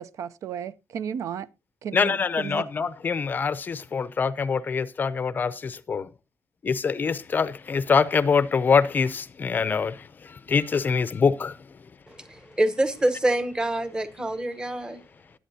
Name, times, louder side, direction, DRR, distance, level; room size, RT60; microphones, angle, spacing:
voice 1, 0.0-1.5 1.8-2.6, right 8 dB, 65° right, 0.6 m, -34 dB
voice 2, 1.9-6.1 6.6-11.6, left 5 dB, 35° left, 0.5 m, -24 dB
voice 3, 12.1-15.0, right 1 dB, 15° right, 1.0 m, -26 dB
20.5 x 8.4 x 2.8 m
cardioid pair, 145°, 6 cm